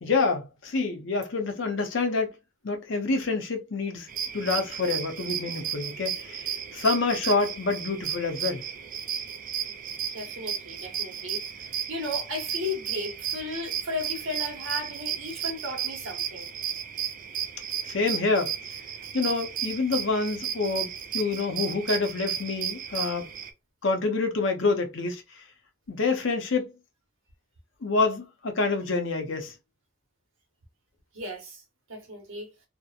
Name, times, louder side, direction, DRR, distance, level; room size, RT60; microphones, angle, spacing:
voice 1, 0.0-2.3 2.6-4.1 4.3-8.6 17.8-18.5 19.1-23.3 23.8-25.2 25.9-26.7 27.8-29.5, left 3 dB, 65° left, 0.6 m, -27 dB
sound 1, 4.1-23.5, right 9 dB, 40° right, 0.3 m, -34 dB
voice 2, 10.1-11.4 11.9-16.5 31.1-31.6 31.9-32.5, left 1 dB, 70° right, 1.0 m, -35 dB
2.7 x 2.1 x 2.3 m
head